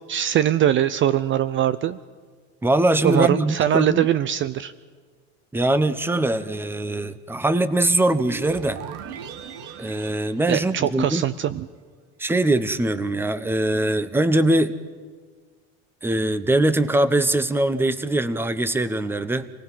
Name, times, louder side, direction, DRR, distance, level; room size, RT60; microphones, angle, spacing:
voice 1, 0.1-2.0 3.0-4.7 10.5-11.7, right 11 dB, 40° right, 15 dB, 0.6 m, -21 dB
voice 2, 2.6-4.1 5.5-8.8 9.8-11.3 12.2-14.7 16.0-19.5, right 1 dB, 5° right, 13 dB, 0.9 m, -22 dB
sound 1, 8.1-11.4, right 7 dB, 70° right, 1.7 m, -38 dB
27.0 x 18.0 x 5.7 m, 1.5 s
cardioid pair, 125°, 32 cm